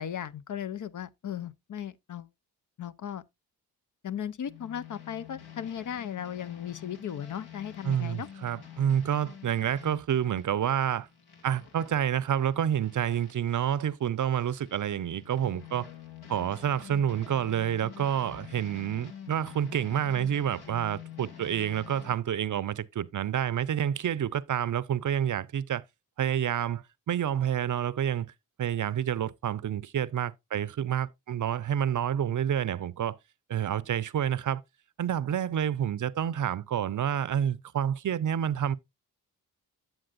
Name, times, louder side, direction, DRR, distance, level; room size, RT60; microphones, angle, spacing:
voice 1, 0.0-2.3 2.8-3.2 4.0-8.3, left 9 dB, 45° left, 0.6 m, -36 dB
sound 1, 4.5-13.9 14.3-22.2, left 9 dB, 65° left, 2.1 m, -48 dB
voice 2, 7.8-11.1 11.4-15.9 16.3-25.8 26.2-28.3 28.6-33.2 33.5-34.6 35.0-38.8, right 9 dB, 45° right, 0.6 m, -28 dB
8.7 x 7.5 x 2.5 m
supercardioid pair, 50°, 42 cm